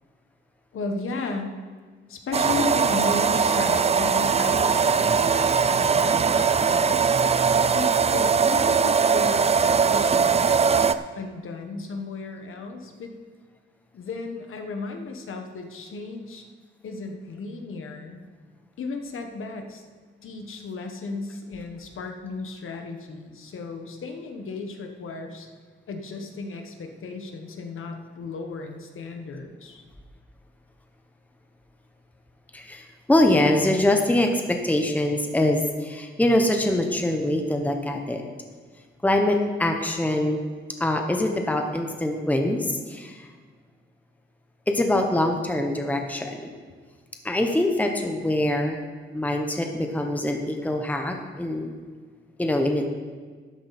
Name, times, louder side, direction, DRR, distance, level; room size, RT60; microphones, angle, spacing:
voice 1, 0.7-1.6 2.1-7.1 7.6-10.7 11.1-13.2 13.9-16.5 16.8-18.2 18.8-19.8 20.2-25.5 25.9-29.8, left 3 dB, 80° left, 4 dB, 1.4 m, -35 dB
sound 1, 2.3-10.9, right 6 dB, 30° right, 0.4 m, -21 dB
voice 2, 32.5-38.2 39.0-40.4 40.8-43.3 44.7-46.5 47.2-48.8 49.1-51.7 52.4-52.9, left 1 dB, 5° left, 3 dB, 1.0 m, -24 dB
12.5 x 10.5 x 4.3 m, 1.5 s
wide cardioid pair, 120°, 21 cm